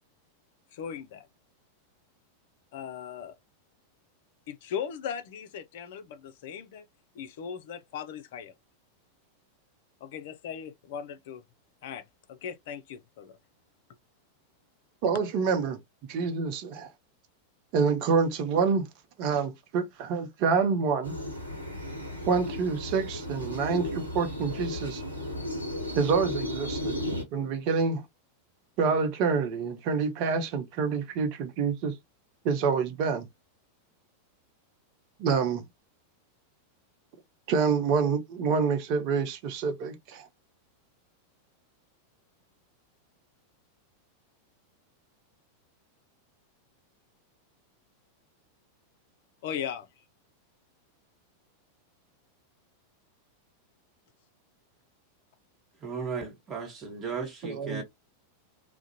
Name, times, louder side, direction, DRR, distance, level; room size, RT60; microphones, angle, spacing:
voice 1, 0.7-1.3 2.7-3.3 4.5-6.9 7.1-8.5 10.0-11.4 11.8-13.4 49.4-49.9, left 8 dB, 55° left, 0.4 m, -38 dB
voice 2, 15.0-15.8 16.1-16.9 17.7-18.9 19.2-21.1 22.3-25.0 26.0-27.0 27.3-28.0 28.8-31.9 32.4-33.3 35.2-35.6 37.5-40.3 57.4-57.8, right 5 dB, 45° right, 0.6 m, -27 dB
sound 1, 21.0-27.2, left 1 dB, 85° right, 0.9 m, -34 dB
voice 3, 55.8-57.8, right 5 dB, 25° right, 1.0 m, -35 dB
2.4 x 2.0 x 2.7 m
figure-of-eight pair, 90°, 0 cm